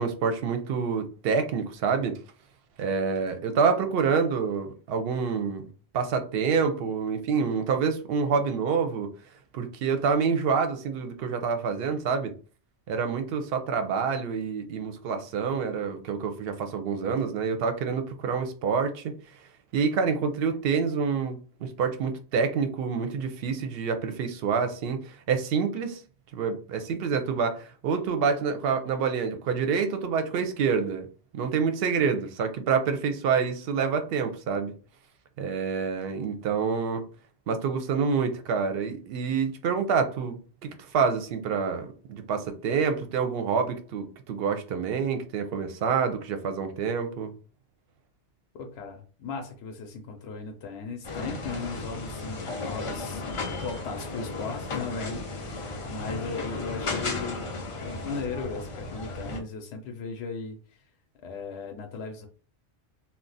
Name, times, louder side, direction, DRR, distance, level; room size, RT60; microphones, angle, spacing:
voice 1, 0.0-2.2 2.8-5.7 5.9-9.1 9.5-12.3 12.9-19.1 19.7-26.0 26.3-31.1 31.3-34.7 35.4-37.0 37.5-47.3, right 5 dB, 65° right, 0.7 m, -27 dB
voice 2, 48.5-53.2 53.5-57.5 57.8-60.8 61.2-62.3, left 4 dB, 70° left, 0.8 m, -37 dB
sound 1, 51.0-59.4, left 3 dB, 50° left, 0.3 m, -34 dB
2.4 x 2.1 x 3.8 m
omnidirectional pair, 1.2 m